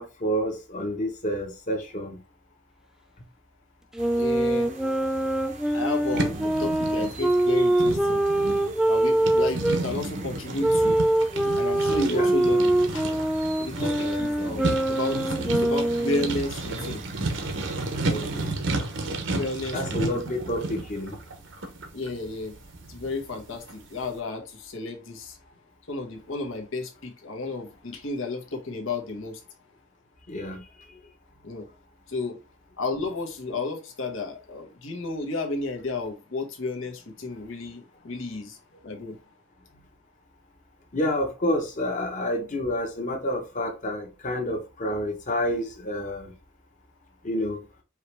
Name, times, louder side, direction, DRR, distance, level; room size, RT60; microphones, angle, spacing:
voice 1, 0.0-2.2 12.1-12.3 14.0-14.3 18.1-18.5 19.7-21.2 30.3-30.6 40.9-46.3 47.2-47.6, equal, 40° left, 1.1 m, -29 dB
Wind instrument woodwind instrument, 3.9-9.8 10.6-16.4, right 1 dB, 5° right, 0.3 m, -24 dB
sound 1, 4.0-18.5, right 4 dB, 35° right, 0.7 m, -44 dB
voice 2, 4.1-4.7 5.7-8.2 8.9-11.0 11.6-13.0 13.6-17.0 19.3-20.2 21.9-22.5 22.9-25.4 25.9-29.4 31.4-31.7 32.1-32.4 32.8-38.6 38.8-39.2, left 2 dB, 75° left, 1.1 m, -32 dB
sound 2, 6.1-23.8, right 2 dB, 65° right, 0.9 m, -32 dB
4.7 x 3.0 x 3.3 m
head